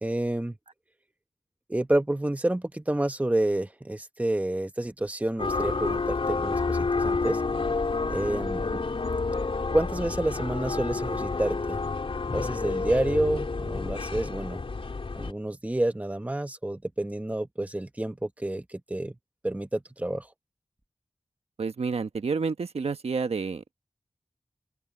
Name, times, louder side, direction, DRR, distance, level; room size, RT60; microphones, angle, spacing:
voice 1, 0.0-0.5 1.7-7.4 8.1-8.7 9.7-11.8 12.3-14.6 15.2-19.1 19.4-20.3, right 1 dB, 15° right, 1.1 m, -29 dB
sound 1, 5.4-15.3, left 3 dB, 65° left, 3.5 m, -29 dB
voice 2, 21.6-23.7, right 5 dB, 90° right, 1.2 m, -29 dB
open air
wide cardioid pair, 85°, 10 cm